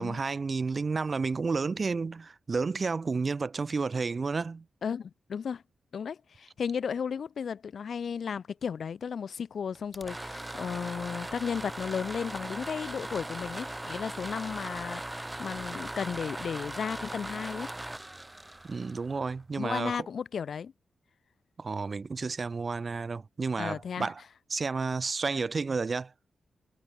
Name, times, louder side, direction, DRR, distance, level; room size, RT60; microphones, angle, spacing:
voice 1, 0.0-4.6 18.7-20.1 21.6-24.2 24.5-26.1, right 4 dB, 35° right, 3.6 m, -31 dB
voice 2, 4.8-5.6 5.9-17.7 19.6-20.7 23.6-24.1, left 7 dB, 60° left, 1.8 m, -34 dB
sound 1, 9.8-19.6, right 1 dB, 10° right, 6.1 m, -39 dB
wide cardioid pair, 160°, 0 cm